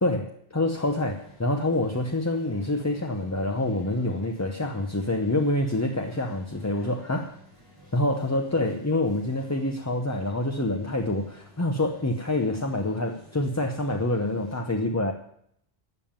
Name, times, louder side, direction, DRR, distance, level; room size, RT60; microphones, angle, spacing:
voice 1, 0.0-7.3 7.9-15.1, left 1 dB, 20° left, 3 dB, 0.7 m, -26 dB
sound 1, 0.6-14.6, equal, 75° left, 4.2 m, -52 dB
12.5 x 7.5 x 8.8 m, 0.71 s
omnidirectional pair, 1.0 m